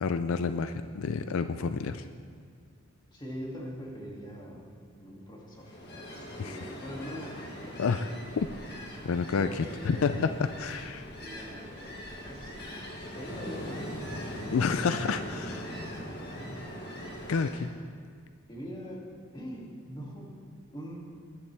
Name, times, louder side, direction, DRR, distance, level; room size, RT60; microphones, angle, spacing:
voice 1, 0.0-2.0 6.4-6.6 7.8-8.0 8.4-8.5 9.0-11.1 14.5-15.7 17.3-17.7, left 5 dB, 75° left, 10 dB, 0.4 m, -29 dB
voice 2, 3.1-4.7 5.0-7.9 8.2-8.3 9.3-10.3 11.2-12.6 13.1-14.1 14.4-14.7 16.5-16.6 18.5-19.1 19.3-20.3 20.7-21.0, equal, 20° left, -3 dB, 2.5 m, -43 dB
Ocean, 5.6-17.7, equal, 55° left, 1.8 m, -41 dB
20.0 x 11.0 x 3.4 m, 2.1 s
head